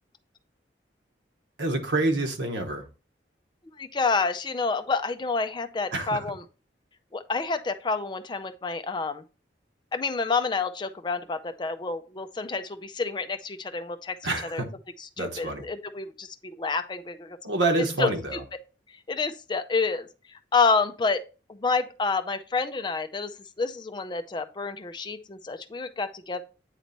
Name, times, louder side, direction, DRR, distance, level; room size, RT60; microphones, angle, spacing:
voice 1, 1.6-2.8 5.9-6.2 14.2-14.7 15.2-15.7 17.4-18.4, right 2 dB, 85° right, 1.1 m, -27 dB
voice 2, 3.8-6.4 7.1-9.2 9.9-14.6 15.2-17.4 18.0-18.1 19.1-21.2 21.5-26.4, left 4 dB, 25° left, 0.4 m, -29 dB
9.0 x 3.3 x 3.9 m
head